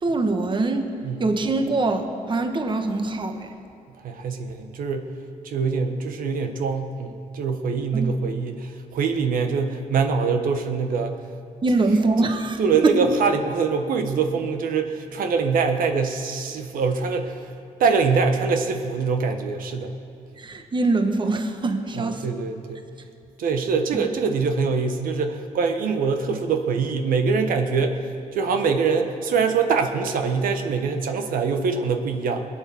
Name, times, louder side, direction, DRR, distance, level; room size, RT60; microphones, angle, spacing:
voice 1, 0.0-0.9 1.2-3.5 7.9-8.1 11.6-13.0 20.4-22.3 23.9-24.0, right 3 dB, 35° right, 6 dB, 1.3 m, -23 dB
voice 2, 4.0-5.1 5.4-11.2 12.6-17.5 17.8-19.9 21.9-22.8 23.4-32.5, right 5 dB, 75° right, 6 dB, 1.2 m, -24 dB
21.0 x 8.7 x 7.1 m, 2.4 s
cardioid pair, 90°, 15 cm